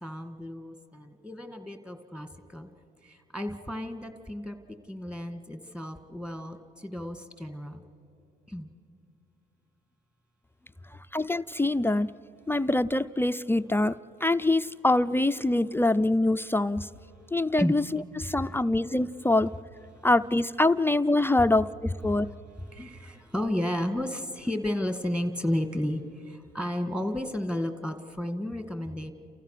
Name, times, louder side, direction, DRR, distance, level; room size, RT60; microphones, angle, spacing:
voice 1, 0.0-2.7 3.0-4.6 4.9-7.8 8.5-8.7 17.6-17.8 18.4-18.5 19.9-20.1 22.6-29.1, left 1 dB, 5° right, 8 dB, 1.9 m, -33 dB
voice 2, 11.1-12.1 12.5-14.0 14.2-16.9 17.3-19.5 20.0-22.3, left 2 dB, 10° left, 11 dB, 0.4 m, -24 dB
29.5 x 15.0 x 6.7 m, 2.8 s
cardioid pair, 90°, 20 cm